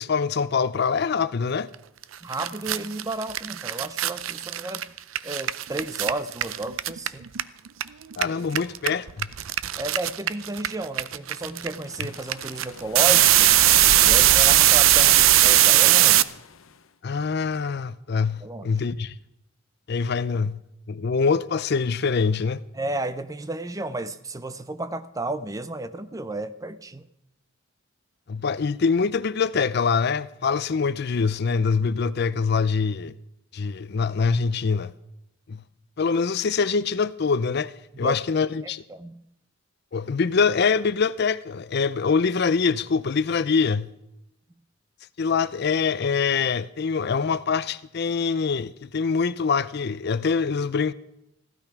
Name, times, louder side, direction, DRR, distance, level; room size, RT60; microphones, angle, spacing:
voice 1, 0.0-1.7 8.2-9.3 17.0-19.2 19.9-20.6 20.9-22.6 28.3-33.1 33.5-34.9 35.5-35.6 36.0-38.8 39.9-43.9 45.2-50.9, left 5 dB, 55° left, 0.5 m, -24 dB
sound 1, 2.0-2.1 2.3-7.8 8.1-16.2, right 14 dB, 80° right, 0.5 m, -19 dB
voice 2, 2.2-4.8 5.2-7.2 9.8-13.5 14.0-16.3 18.4-18.8 22.7-27.1 37.9-38.2 38.6-39.3, right 2 dB, 15° right, 0.6 m, -32 dB
sound 2, 11.4-16.7, left 4 dB, 85° left, 0.8 m, -37 dB
15.5 x 12.0 x 5.9 m
head